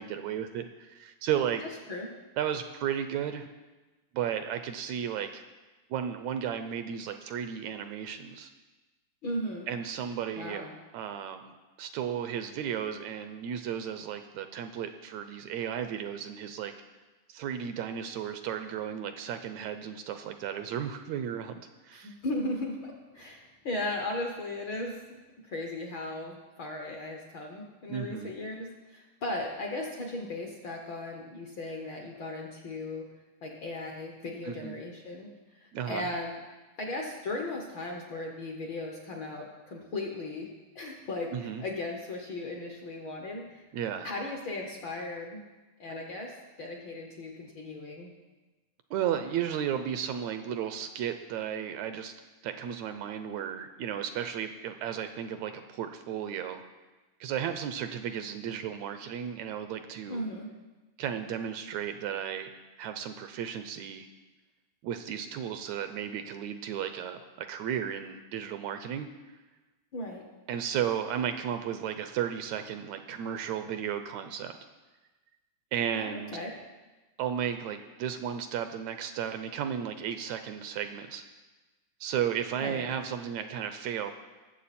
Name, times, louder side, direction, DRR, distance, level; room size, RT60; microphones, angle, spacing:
voice 1, 0.0-1.6 2.4-3.5 4.1-5.4 5.9-8.5 9.7-16.7 17.3-22.2 27.9-28.3 34.4-34.8 35.7-36.1 41.3-41.6 43.7-44.1 48.9-52.1 52.4-56.6 57.2-60.2 61.0-62.5 62.8-64.1 64.8-69.4 70.5-74.5 75.7-76.4 77.2-81.2 82.0-84.1, right 9 dB, 80° right, 8 dB, 1.7 m, -34 dB
voice 2, 9.2-9.7 10.3-10.7 21.9-25.2 25.4-33.1 33.4-36.3 36.8-40.5 40.7-43.6 44.0-45.4 45.8-48.1 60.1-60.5 69.9-70.2 75.9-76.5 82.6-82.8, left 2 dB, 60° left, 1 dB, 1.3 m, -37 dB
20.0 x 7.7 x 4.2 m, 1.2 s
omnidirectional pair, 3.5 m